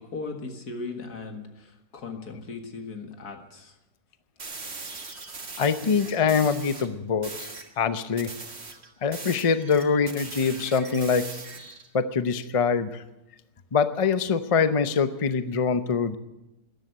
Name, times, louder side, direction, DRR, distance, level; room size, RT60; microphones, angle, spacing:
voice 1, 0.0-3.7, left 4 dB, 80° left, 4 dB, 2.3 m, -38 dB
sound 1, 4.4-6.9 7.2-7.7 8.2-11.9, right 4 dB, 45° right, 1.9 m, -40 dB
voice 2, 5.6-7.5 7.8-8.3 9.0-11.3 11.9-13.0 13.7-16.2, left 5 dB, 35° left, 11 dB, 0.5 m, -24 dB
13.5 x 10.5 x 9.4 m, 0.98 s
omnidirectional pair, 1.7 m